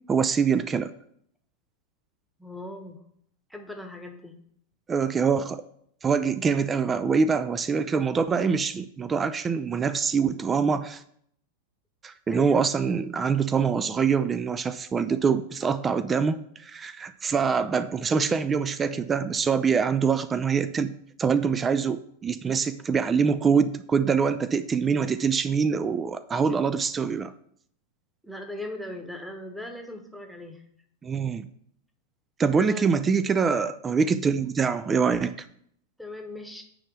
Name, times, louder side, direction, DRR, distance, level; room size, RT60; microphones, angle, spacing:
voice 1, 0.1-0.9 4.9-5.6 6.0-11.0 12.0-20.9 21.2-27.3 31.0-31.5 32.4-35.3, right 6 dB, 20° right, 14 dB, 0.3 m, -24 dB
voice 2, 2.4-3.0 3.5-4.3 12.3-12.6 28.2-30.6 32.5-33.0 34.4-34.5 36.0-36.6, left 2 dB, ahead, 5 dB, 1.1 m, -38 dB
9.6 x 3.3 x 6.1 m, 0.68 s
figure-of-eight pair, 90°, 0 cm